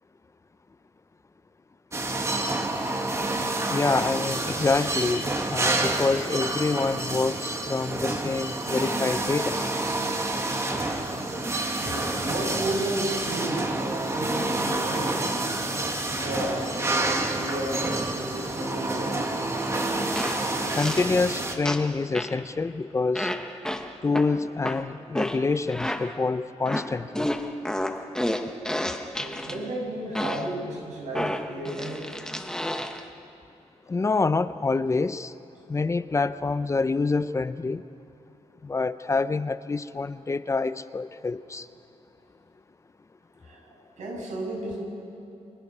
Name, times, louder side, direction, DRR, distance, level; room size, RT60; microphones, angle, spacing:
sound 1, 1.9-21.6, right 2 dB, 25° right, 1.9 m, -28 dB
voice 1, 3.7-9.6 20.8-23.3 24.0-27.3 33.9-35.3 35.7-37.8 38.6-41.7, left 3 dB, 25° left, 13 dB, 0.5 m, -26 dB
voice 2, 11.8-15.3 16.1-17.9 18.1-19.2 28.6-28.7 29.2-32.1 43.4-44.8, right 1 dB, 90° right, -1 dB, 6.7 m, -33 dB
sound 2, 19.6-19.7 20.1-21.2 21.6-22.4 23.1-26.3 26.6-29.6 30.1-30.6 31.1-33.1, left 1 dB, 5° left, 1.0 m, -31 dB
29.5 x 23.5 x 5.5 m, 2.8 s
wide cardioid pair, 125°, 12 cm